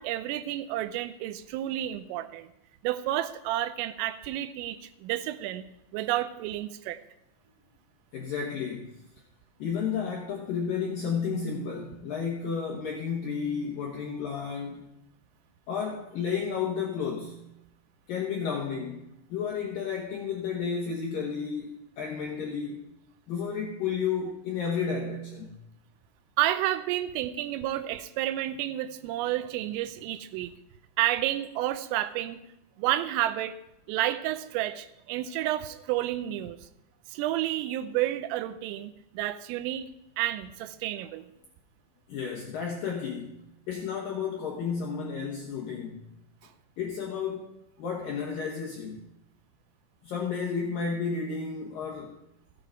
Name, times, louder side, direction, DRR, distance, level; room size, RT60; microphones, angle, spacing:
voice 1, 0.0-2.5 2.8-5.6 5.9-7.0 26.4-30.5 31.0-32.4 32.8-33.6 33.9-36.6 37.1-39.9 40.2-41.3, right 13 dB, 85° right, 12 dB, 3.3 m, -30 dB
voice 2, 8.1-8.9 9.6-14.9 15.7-17.4 18.1-22.8 23.3-25.6 42.1-43.4 43.7-46.1 46.8-49.0 50.0-52.2, left 6 dB, 75° left, -1 dB, 2.0 m, -32 dB
15.0 x 9.3 x 4.5 m, 0.84 s
omnidirectional pair, 5.8 m